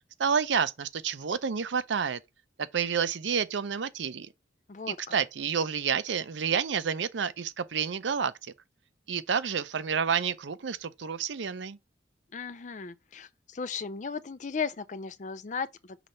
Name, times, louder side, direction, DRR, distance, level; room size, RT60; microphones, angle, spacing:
voice 1, 0.2-2.2 2.6-4.3 5.1-8.5 9.1-11.8, right 6 dB, 85° right, 0.6 m, -29 dB
voice 2, 4.7-5.2 12.3-16.0, left 5 dB, 40° left, 0.5 m, -36 dB
5.9 x 3.2 x 5.2 m
head